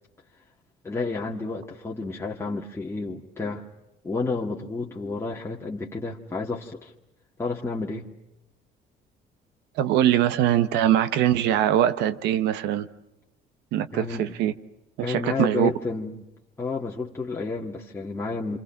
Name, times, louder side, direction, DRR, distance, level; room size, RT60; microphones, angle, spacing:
voice 1, 0.8-3.6 4.0-6.9 7.4-8.1 13.9-14.2 15.0-16.2 16.6-18.6, left 3 dB, 15° left, -2 dB, 1.9 m, -30 dB
voice 2, 9.8-12.9 13.7-14.5 15.0-15.7, right 11 dB, 90° right, 13 dB, 1.2 m, -22 dB
27.5 x 27.0 x 5.8 m, 0.86 s
cardioid pair, 110°, 17 cm